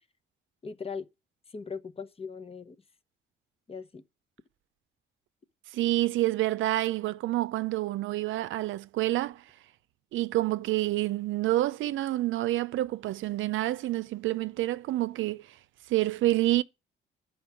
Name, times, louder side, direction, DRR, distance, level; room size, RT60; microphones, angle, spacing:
voice 1, 0.6-1.1 1.5-2.8 3.7-4.0, left 5 dB, 30° left, 0.9 m, -39 dB
voice 2, 5.7-9.4 10.1-15.5 15.9-16.6, right 16 dB, 80° right, 0.6 m, -28 dB
10.5 x 5.1 x 8.4 m
cardioid pair, 90°, 20 cm